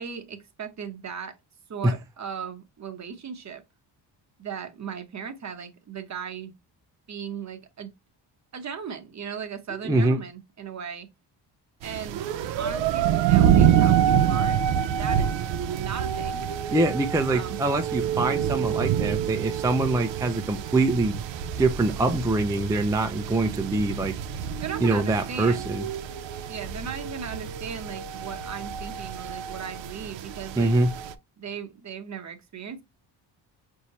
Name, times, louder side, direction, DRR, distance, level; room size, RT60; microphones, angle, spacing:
voice 1, 0.0-1.4 1.7-3.6 4.4-6.5 7.1-7.9 8.5-11.1 11.8-12.2 12.6-14.6 15.0-15.3 15.7-16.5 17.3-17.6 24.6-25.7 26.5-30.7 31.4-32.8, right 7 dB, 40° right, 0.9 m, -37 dB
voice 2, 9.8-10.2 16.7-21.2 21.6-24.2 24.8-25.8 30.6-30.9, right 2 dB, 10° right, 0.4 m, -24 dB
sound 1, 11.8-31.1, right 9 dB, 85° right, 0.6 m, -27 dB
5.4 x 2.8 x 3.0 m
cardioid pair, 105°, 43 cm